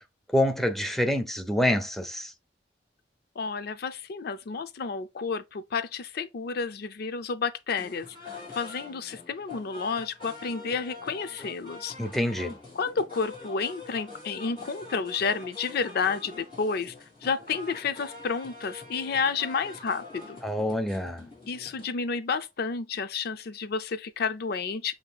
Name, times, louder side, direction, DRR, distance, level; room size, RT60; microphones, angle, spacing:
voice 1, 0.3-2.3 12.0-12.6 20.4-21.3, left 1 dB, ahead, 0.7 m, -26 dB
voice 2, 3.4-11.9 12.7-16.9 17.2-20.4 21.5-24.9, left 5 dB, 60° left, 0.4 m, -31 dB
sound 1, 7.7-21.9, left 3 dB, 30° left, 3.0 m, -45 dB
7.4 x 2.8 x 2.2 m
head